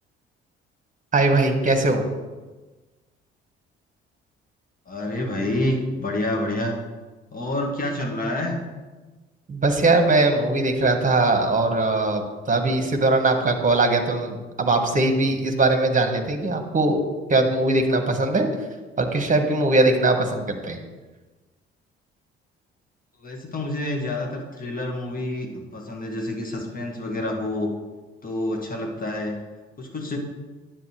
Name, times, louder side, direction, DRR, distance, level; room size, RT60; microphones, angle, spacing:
voice 1, 1.1-2.0 9.5-12.2 12.5-17.0 17.3-18.5 19.0-20.8, right 2 dB, 25° right, 5 dB, 1.4 m, -20 dB
voice 2, 4.9-6.7 7.3-8.6 23.2-27.7 28.2-29.3 29.8-30.2, left 1 dB, 30° left, 1 dB, 1.8 m, -28 dB
9.7 x 7.5 x 3.3 m, 1.2 s
figure-of-eight pair, 45°, 30 cm